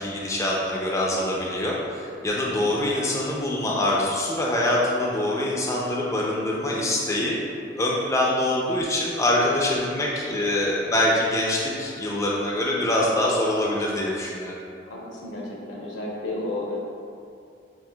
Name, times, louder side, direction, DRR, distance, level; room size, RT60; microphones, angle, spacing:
voice 1, 0.0-7.4 7.8-14.6, left 1 dB, 15° left, -3 dB, 0.3 m, -24 dB
voice 2, 14.8-16.8, left 2 dB, 85° left, -3 dB, 0.8 m, -32 dB
5.4 x 2.7 x 2.2 m, 2.5 s
head